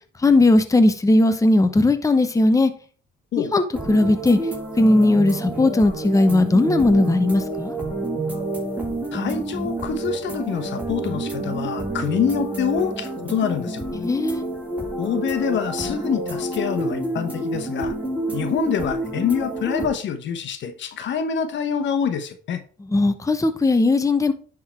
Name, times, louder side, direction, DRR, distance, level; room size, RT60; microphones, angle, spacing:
voice 1, 0.2-2.7 3.4-4.4 4.8-7.7 14.0-14.4 22.9-24.3, left 2 dB, 15° left, 8 dB, 0.8 m, -18 dB
sound 1, 3.7-19.9, right 2 dB, 10° right, 4.0 m, -29 dB
voice 2, 9.1-13.9 15.0-17.9 18.3-22.6, left 7 dB, 70° left, 10 dB, 1.1 m, -26 dB
10.5 x 3.8 x 4.4 m, 0.40 s
cardioid pair, 90°, 20 cm